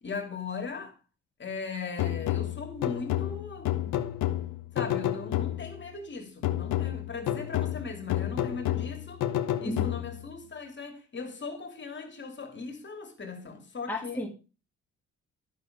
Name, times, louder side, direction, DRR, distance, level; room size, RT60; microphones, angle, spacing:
voice 1, 0.0-1.0 1.4-4.0 4.7-9.3 9.6-14.2, left 4 dB, 40° left, 2.6 m, -38 dB
sound 1, 2.0-5.9 6.4-10.3, left 13 dB, 85° left, 0.9 m, -30 dB
voice 2, 13.9-14.3, left 1 dB, 5° left, 2.1 m, -33 dB
11.5 x 6.6 x 5.0 m
cardioid pair, 90°, 30 cm